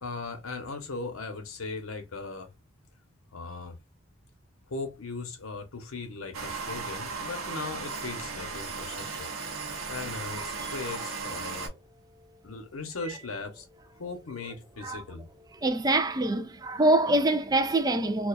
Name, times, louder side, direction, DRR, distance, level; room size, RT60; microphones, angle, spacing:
voice 1, 0.0-2.5 3.3-3.8 4.7-9.3 9.9-11.7 12.4-13.7 14.0-15.3, left 3 dB, 90° left, 0.8 m, -38 dB
sound 1, 6.3-11.7, right 4 dB, 80° right, 0.7 m, -36 dB
voice 2, 15.6-18.3, right 2 dB, 20° right, 0.3 m, -24 dB
2.4 x 2.2 x 2.3 m
head